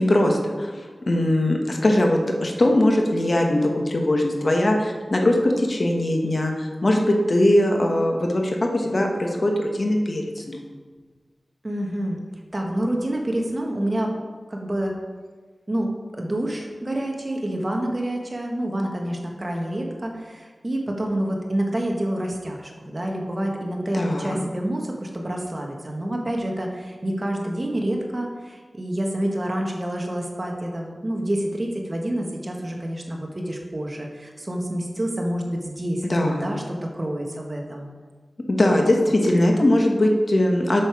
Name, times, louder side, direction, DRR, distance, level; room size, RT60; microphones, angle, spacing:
voice 1, 0.0-10.6 23.9-24.4 36.0-36.5 38.5-40.8, left 1 dB, 50° left, 1 dB, 1.2 m, -21 dB
voice 2, 11.6-12.2 12.5-14.1 14.5-14.9 15.7-15.9 16.2-37.9, right 1 dB, 35° right, 1 dB, 1.3 m, -28 dB
7.7 x 6.5 x 4.8 m, 1.5 s
wide cardioid pair, 80°, 0 cm